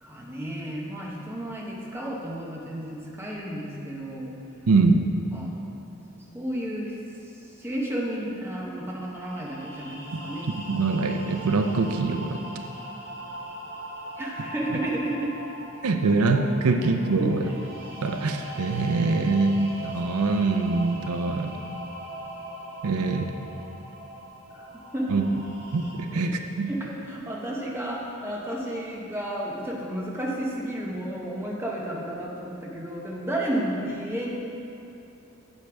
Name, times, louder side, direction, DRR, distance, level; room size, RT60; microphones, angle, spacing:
voice 1, 0.0-4.3 5.3-5.5 6.3-6.9 7.6-10.5 14.2-15.3 17.2-17.6 24.5-24.7 24.9-25.3 26.1-26.3 26.7-34.3, right 1 dB, 10° right, -3 dB, 0.9 m, -32 dB
voice 2, 4.7-5.0 10.1-10.2 10.7-12.4 15.8-17.5 18.0-21.6 22.8-23.3 25.1-25.2 25.7-26.7, right 3 dB, 85° right, 6 dB, 0.5 m, -24 dB
sound 1, 8.6-25.9, right 1 dB, 50° right, 1.3 m, -40 dB
8.4 x 7.5 x 3.4 m, 2.8 s
head